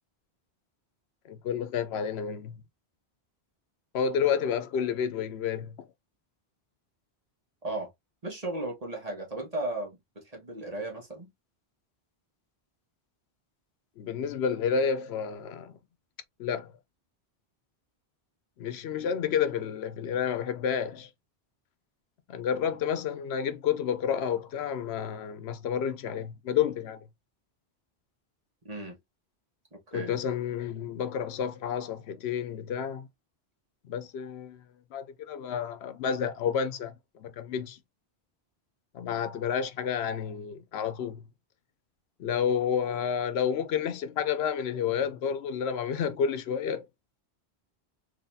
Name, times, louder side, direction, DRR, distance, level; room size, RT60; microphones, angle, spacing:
voice 1, 1.3-2.6 3.9-5.9 14.0-15.7 16.4-16.7 18.6-21.1 22.3-27.0 29.9-33.1 33.9-34.6 34.9-36.9 37.2-37.8 38.9-41.2 42.2-46.8, left 7 dB, 85° left, 0.9 m, -30 dB
voice 2, 8.2-11.3 28.6-29.0 29.7-30.1, right 2 dB, 40° right, 1.6 m, -35 dB
4.0 x 3.1 x 2.6 m
omnidirectional pair, 1.1 m